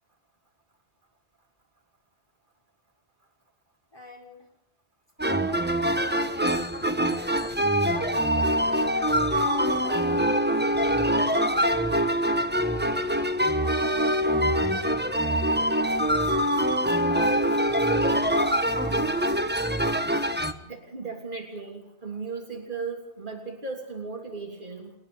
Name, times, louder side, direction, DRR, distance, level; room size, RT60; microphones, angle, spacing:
voice 1, 3.9-4.5 5.4-6.4 7.0-7.5 7.9-8.9 9.2-11.9 12.5-13.1 13.6-16.6 17.0-19.4, equal, 25° left, 0 dB, 5.7 m, -44 dB
sound 1, 5.2-20.5, equal, 10° right, 1.3 m, -24 dB
voice 2, 20.6-24.9, right 4 dB, 50° right, 2 dB, 3.6 m, -36 dB
30.0 x 10.5 x 9.4 m, 0.84 s
omnidirectional pair, 1.1 m